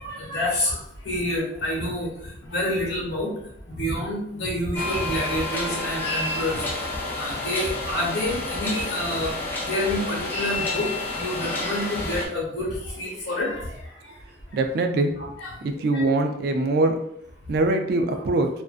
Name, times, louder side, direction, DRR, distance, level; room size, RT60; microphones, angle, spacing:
voice 1, 0.0-2.1 2.4-3.3 3.7-6.6 7.1-9.4 9.6-10.9 11.1-13.8 14.0-14.1 15.2-16.1, left 1 dB, 70° left, -3 dB, 1.0 m, -28 dB
sound 1, 4.7-12.3, left 2 dB, 10° left, 0.4 m, -30 dB
voice 2, 14.5-15.1 15.6-17.0 17.5-18.5, right 2 dB, 55° right, 6 dB, 0.3 m, -22 dB
2.5 x 2.1 x 2.3 m, 0.72 s
head